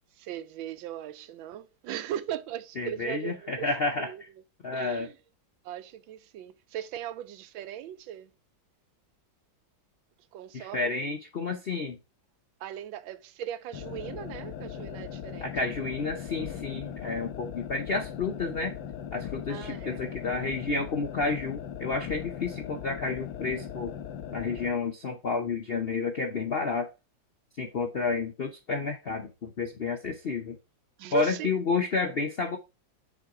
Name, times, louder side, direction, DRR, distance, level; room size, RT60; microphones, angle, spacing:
voice 1, 0.1-3.7 4.0-4.2 4.7-5.1 5.6-8.3 10.3-11.0 12.6-15.5 19.5-20.1 31.0-31.5, right 11 dB, 90° right, 1.4 m, -38 dB
voice 2, 2.8-4.3 4.6-5.1 10.5-12.0 15.4-18.8 19.1-23.9 24.3-26.9 27.6-30.6 31.1-32.6, left 4 dB, 65° left, 0.6 m, -30 dB
sound 1, 13.7-24.8, left 9 dB, 90° left, 1.6 m, -39 dB
5.5 x 4.5 x 4.7 m
omnidirectional pair, 2.1 m